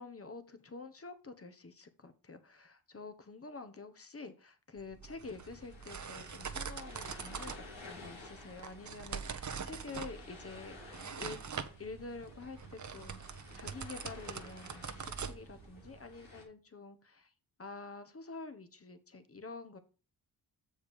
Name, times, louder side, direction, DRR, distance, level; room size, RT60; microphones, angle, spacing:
voice 1, 0.0-11.4 11.8-17.3 17.6-19.8, left 3 dB, 30° left, 10 dB, 1.3 m, -48 dB
sound 1, 4.8-15.9, right 6 dB, 40° right, 1.0 m, -44 dB
sound 2, 5.2-16.4, left 3 dB, 80° left, 2.3 m, -53 dB
6.9 x 5.0 x 5.4 m, 0.35 s
supercardioid pair, 50°, 45 cm